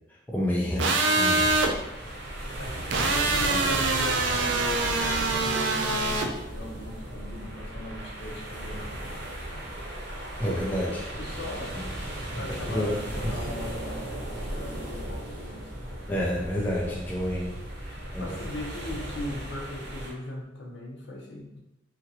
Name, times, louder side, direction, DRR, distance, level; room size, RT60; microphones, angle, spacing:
voice 1, 0.3-1.5 10.4-11.0 12.7-12.9 13.2-13.3 16.1-17.6 17.8-18.3, equal, 10° left, -4 dB, 0.4 m, -29 dB
sound 1, 0.8-1.7 2.9-6.3, right 3 dB, 70° right, 0.4 m, -24 dB
sound 2, 1.4-20.1, right 1 dB, 55° right, 0.8 m, -36 dB
voice 2, 2.6-9.2 11.1-11.8 12.3-16.0 17.9-21.6, left 1 dB, 65° left, -2 dB, 0.6 m, -39 dB
2.9 x 2.6 x 2.7 m, 0.92 s
head